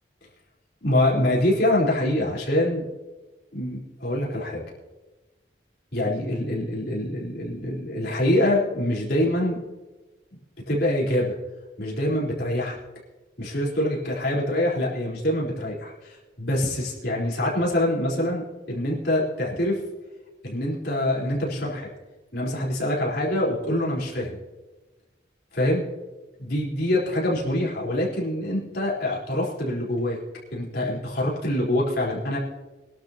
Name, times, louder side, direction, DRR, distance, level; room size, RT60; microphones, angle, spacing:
voice 1, 0.8-2.8 3.5-4.6 5.9-9.6 10.7-11.4 11.8-12.8 13.4-18.4 18.7-19.8 20.4-21.9 22.3-24.4 25.5-25.8 26.4-30.2 30.5-32.4, left 1 dB, 60° left, -5 dB, 4.1 m, -25 dB
24.0 x 12.0 x 2.9 m, 1.2 s
head